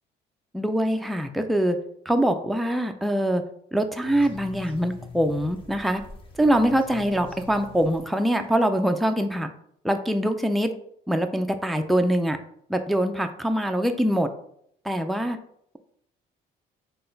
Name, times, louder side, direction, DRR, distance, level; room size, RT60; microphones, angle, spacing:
voice 1, 0.5-1.8 2.1-3.4 3.7-6.0 6.4-9.5 9.8-10.7 11.1-12.4 12.7-14.3 14.8-15.4, equal, ahead, 6 dB, 0.3 m, -23 dB
sound 1, 4.0-8.3, left 4 dB, 30° left, 0.8 m, -44 dB
3.8 x 2.3 x 3.8 m, 0.69 s
cardioid pair, 110°, 17 cm